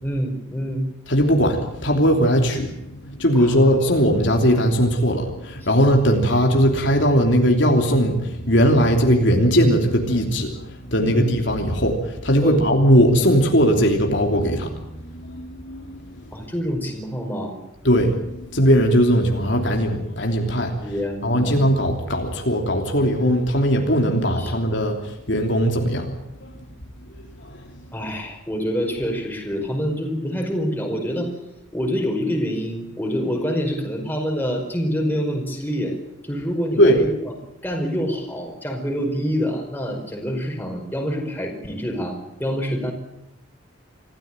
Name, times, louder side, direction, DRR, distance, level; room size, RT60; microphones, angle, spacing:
voice 1, 0.0-0.9 3.4-3.7 11.0-11.3 12.4-12.6 16.3-17.6 20.8-21.5 24.4-24.5 27.9-31.3 31.7-35.9 36.2-37.1 37.6-42.9, equal, 10° left, 2 dB, 5.0 m, -26 dB
voice 2, 1.1-16.3 17.8-20.9 21.2-26.1 26.4-26.5 27.1-27.6 36.8-37.0, equal, 60° left, 2 dB, 3.1 m, -19 dB
26.0 x 15.0 x 9.0 m, 0.87 s
head